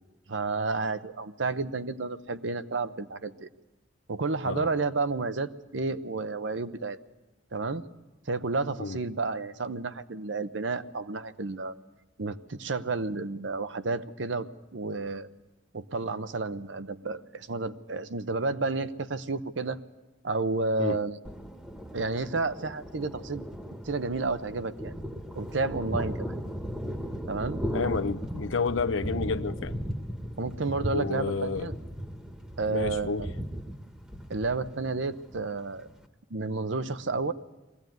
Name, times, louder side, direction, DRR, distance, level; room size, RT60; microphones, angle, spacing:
voice 1, 0.3-3.5 4.1-7.0 7.5-7.8 8.3-11.7 12.2-15.3 15.7-19.8 20.2-21.2 21.9-23.4 23.8-24.9 25.3-26.4 27.3-27.6 30.4-31.7 32.6-33.3 34.3-35.9 36.3-37.3, right 3 dB, 75° right, 0.8 m, -31 dB
Thunder, 21.2-36.0, equal, 5° right, 1.2 m, -37 dB
voice 2, 27.7-29.8 30.9-31.7 32.7-33.3, left 4 dB, 90° left, 0.7 m, -30 dB
22.0 x 16.0 x 9.3 m
head